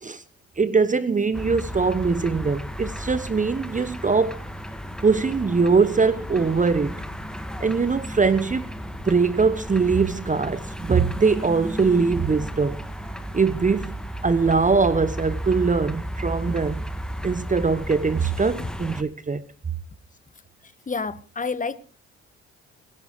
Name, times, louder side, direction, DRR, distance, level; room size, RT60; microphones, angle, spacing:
voice 1, 0.6-4.4 5.0-7.0 7.6-8.7 9.1-12.8 13.3-14.0 14.2-16.8 17.2-19.4, right 4 dB, 20° right, 1.1 m, -22 dB
sound 1, 1.3-19.0, equal, ahead, 1.9 m, -34 dB
voice 2, 20.9-21.7, left 4 dB, 20° left, 1.6 m, -28 dB
22.0 x 10.5 x 4.8 m
figure-of-eight pair, 45°, 35 cm